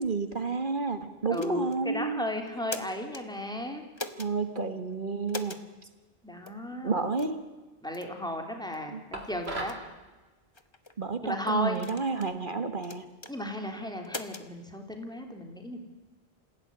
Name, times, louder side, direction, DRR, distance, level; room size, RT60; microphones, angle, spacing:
voice 1, 0.0-2.2 4.2-5.6 6.8-7.4 8.9-9.0 11.0-13.1, right 4 dB, 50° right, 9 dB, 1.8 m, -30 dB
sound 1, 1.3-1.8 2.5-3.2 4.0-4.3 5.3-5.6 6.5-6.6 7.2-7.4 7.9-8.1 8.7-8.8 9.4-9.8 10.5-10.9 11.7-12.3 12.8-13.3 14.0-14.5, left 2 dB, 25° left, 1.3 m, -41 dB
voice 2, 1.3-3.8 6.2-6.9 7.8-9.8 11.2-11.8 13.3-15.8, left 1 dB, 5° left, 4 dB, 3.3 m, -35 dB
sound 2, 9.1-9.9, right 2 dB, 75° right, 3.5 m, -36 dB
27.0 x 16.5 x 9.8 m, 1.2 s
omnidirectional pair, 1.1 m